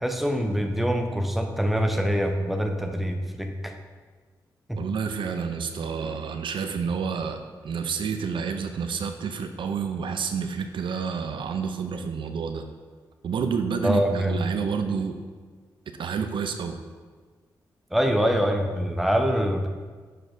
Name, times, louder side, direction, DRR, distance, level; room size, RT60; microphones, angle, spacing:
voice 1, 0.0-3.7 4.7-4.8 13.8-14.4 17.9-19.7, equal, ahead, 4 dB, 0.8 m, -24 dB
voice 2, 4.8-7.4 7.6-12.7 13.2-15.2 16.0-16.8, right 6 dB, 65° right, 7 dB, 0.5 m, -29 dB
6.5 x 5.8 x 2.6 m, 1.5 s
supercardioid pair, 40°, 9 cm